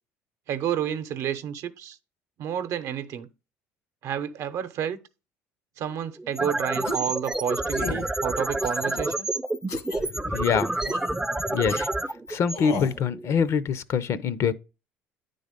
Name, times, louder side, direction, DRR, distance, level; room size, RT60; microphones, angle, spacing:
voice 1, 0.5-2.0 2.4-3.3 4.0-5.0 5.8-9.3, right 9 dB, 60° right, 0.8 m, -30 dB
sound 1, 6.2-13.3, right 2 dB, 10° right, 0.5 m, -29 dB
sound 2, 6.8-7.2 7.7-8.1 8.6-9.1 9.7-10.0 10.8-11.1 11.7-11.9 12.5-13.0, left 3 dB, 75° left, 1.5 m, -35 dB
voice 2, 9.9-10.7 11.5-11.9 12.3-14.5, left 7 dB, 55° left, 0.6 m, -25 dB
9.6 x 3.9 x 5.2 m
supercardioid pair, 85°, 6 cm